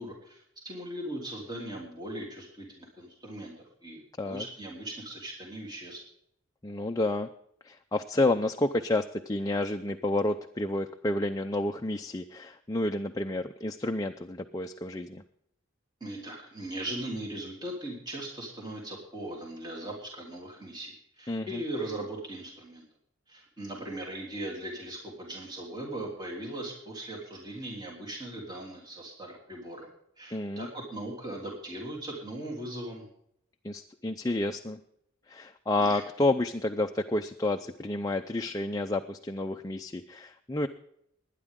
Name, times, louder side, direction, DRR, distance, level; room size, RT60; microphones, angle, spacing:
voice 1, 0.0-6.0 16.0-22.8 23.3-29.9 30.2-33.1 35.8-36.0, right 1 dB, 20° right, -1 dB, 3.3 m, -39 dB
voice 2, 6.6-7.3 7.6-15.2 21.3-21.6 30.3-30.7 33.6-34.8 35.3-40.7, left 2 dB, 15° left, 5 dB, 0.5 m, -30 dB
20.5 x 10.0 x 3.7 m, 0.72 s
head